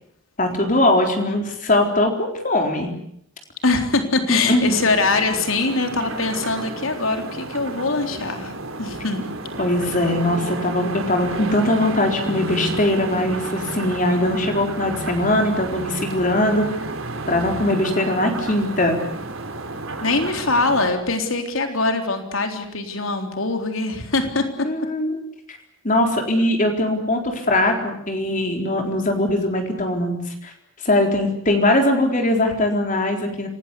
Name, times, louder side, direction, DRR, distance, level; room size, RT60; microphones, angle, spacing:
voice 1, 0.4-2.9 4.3-4.7 9.6-16.7 17.3-19.0 24.6-25.2 25.5-25.6 25.8-30.2 30.4-30.5 30.8-33.5, left 1 dB, 40° left, 3 dB, 4.1 m, -21 dB
voice 2, 3.6-8.5 8.8-9.2 20.0-24.5, left 3 dB, 80° left, 5 dB, 3.8 m, -22 dB
sound 1, 4.7-20.9, right 2 dB, 80° right, 3.6 m, -31 dB
27.0 x 19.5 x 8.3 m, 0.73 s
head